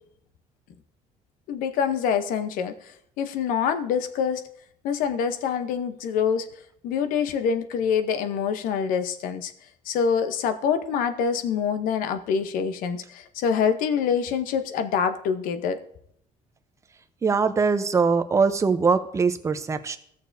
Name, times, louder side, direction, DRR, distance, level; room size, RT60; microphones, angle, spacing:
voice 1, 1.5-4.5 4.8-6.5 6.8-9.5 9.9-15.8, left 7 dB, 75° left, 10 dB, 0.8 m, -25 dB
voice 2, 17.2-20.0, right 5 dB, 20° right, 9 dB, 0.6 m, -22 dB
16.0 x 6.7 x 2.6 m, 0.69 s
cardioid pair, 140°, 14 cm